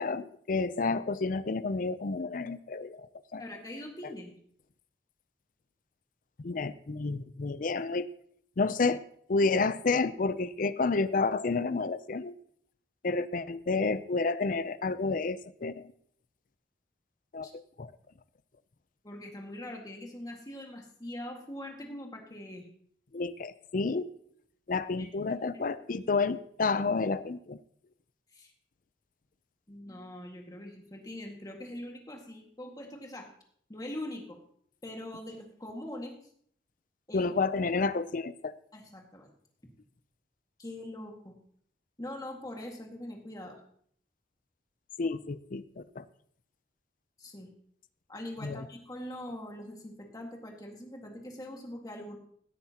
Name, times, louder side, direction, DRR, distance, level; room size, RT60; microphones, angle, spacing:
voice 1, 0.0-3.4 6.4-8.1 8.6-9.0 9.3-12.3 13.0-15.9 17.3-17.9 23.1-24.1 24.7-27.6 37.1-38.5 45.0-46.1 48.4-48.6, left 3 dB, 50° left, 14 dB, 0.5 m, -30 dB
voice 2, 3.4-4.3 17.4-17.5 19.0-22.7 25.0-25.1 26.0-26.1 28.3-28.5 29.7-33.3 33.7-34.4 34.8-36.1 37.1-37.3 38.7-39.3 40.6-41.3 42.0-43.6 47.2-47.5 48.1-52.2, left 1 dB, 20° left, 1 dB, 1.9 m, -42 dB
17.0 x 9.5 x 2.9 m, 0.63 s
head